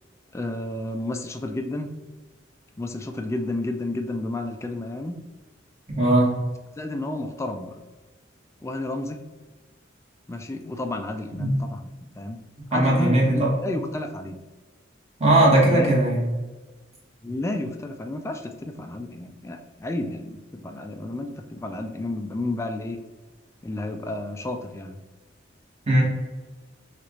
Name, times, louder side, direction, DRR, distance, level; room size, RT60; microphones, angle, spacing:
voice 1, 0.3-1.9 2.8-5.1 6.8-7.8 8.6-9.2 10.3-11.9 12.2-12.4 12.7-14.4 15.7-15.9 17.2-23.0 23.6-25.0, left 2 dB, 15° left, 5 dB, 0.3 m, -31 dB
voice 2, 6.0-6.4 11.4-11.6 12.7-13.5 15.2-16.2 25.9-26.0, right 1 dB, 35° right, -4 dB, 1.4 m, -19 dB
6.1 x 2.5 x 3.1 m, 1.2 s
head